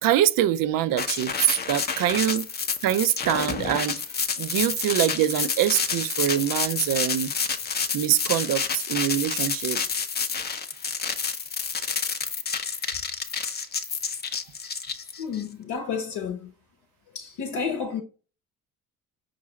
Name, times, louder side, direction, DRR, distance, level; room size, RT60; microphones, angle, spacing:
voice 1, 0.0-2.5 2.8-4.0 4.4-7.3 7.9-9.8, right 12 dB, 50° right, 0.5 m, -24 dB
sound 1, 1.0-15.4, left 5 dB, 20° left, 0.6 m, -29 dB
voice 2, 15.2-16.5 17.1-18.0, left 6 dB, 60° left, 0.9 m, -31 dB
5.3 x 2.5 x 3.0 m
hypercardioid pair, 50°, 45 cm